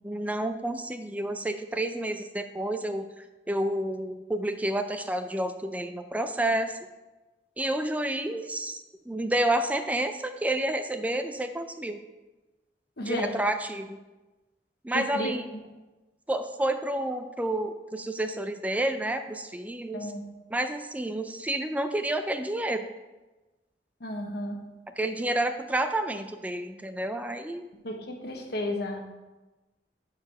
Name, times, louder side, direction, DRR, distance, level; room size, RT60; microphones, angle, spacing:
voice 1, 0.0-6.8 7.6-12.0 13.1-14.0 14.8-15.5 16.3-20.1 20.5-22.9 24.9-27.7, right 1 dB, 10° right, 8 dB, 0.3 m, -30 dB
voice 2, 13.0-13.4 14.9-15.3 19.9-20.2 24.0-24.6 27.8-29.0, left 1 dB, 65° left, 2 dB, 1.1 m, -32 dB
6.6 x 4.8 x 5.4 m, 1.1 s
head